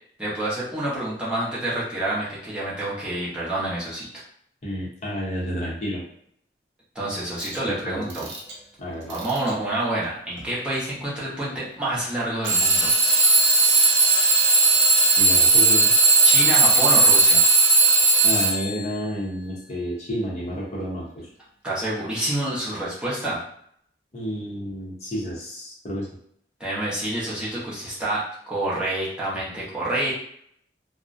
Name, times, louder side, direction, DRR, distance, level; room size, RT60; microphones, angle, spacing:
voice 1, 0.2-4.1 6.9-8.3 9.1-12.9 16.2-17.4 21.6-23.4 26.6-30.1, right 1 dB, 5° right, -8 dB, 0.7 m, -28 dB
voice 2, 4.6-6.0 7.6-8.3 8.8-9.2 15.2-15.9 18.2-21.3 24.1-26.1, equal, 40° left, -4 dB, 0.7 m, -30 dB
Alarm / Clock, 7.4-7.6 8.1-8.5 9.1-9.5 10.4-10.5 12.4-18.8, right 3 dB, 75° right, 0.5 m, -17 dB
2.4 x 2.0 x 2.5 m, 0.66 s
head